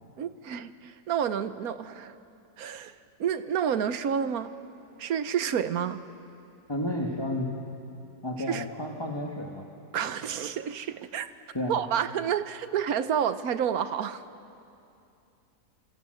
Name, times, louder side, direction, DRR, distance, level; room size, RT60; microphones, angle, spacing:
voice 1, 0.2-2.1 2.6-4.5 5.0-6.0 8.5-8.6 9.9-11.3 11.7-14.2, right 8 dB, 70° right, 12 dB, 1.3 m, -29 dB
voice 2, 6.7-7.7 8.2-9.7 11.5-11.8, left 1 dB, 15° left, 0 dB, 1.7 m, -32 dB
27.5 x 27.0 x 7.8 m, 2.7 s
omnidirectional pair, 1.7 m